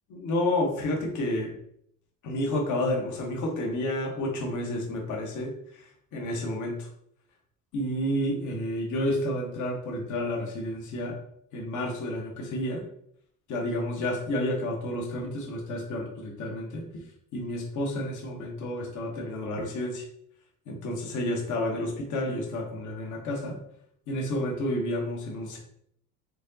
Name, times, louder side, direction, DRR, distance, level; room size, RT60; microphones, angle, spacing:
voice 1, 0.1-1.5 2.2-6.9 7.7-11.2 11.5-12.8 13.5-17.0 17.3-20.0 20.7-23.6 24.1-25.6, left 1 dB, 55° left, 0 dB, 1.3 m, -30 dB
4.5 x 3.9 x 2.8 m, 0.67 s
cardioid pair, 115°, 37 cm